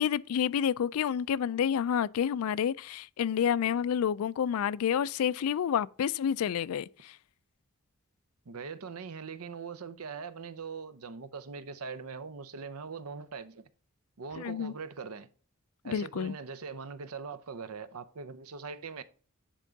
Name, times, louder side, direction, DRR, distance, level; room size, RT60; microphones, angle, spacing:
voice 1, 0.0-7.1 14.4-14.7 15.9-16.3, left 8 dB, 75° left, 0.3 m, -29 dB
voice 2, 8.5-13.6 14.2-15.3 15.8-19.0, right 5 dB, 80° right, 0.7 m, -41 dB
10.0 x 3.7 x 3.9 m
head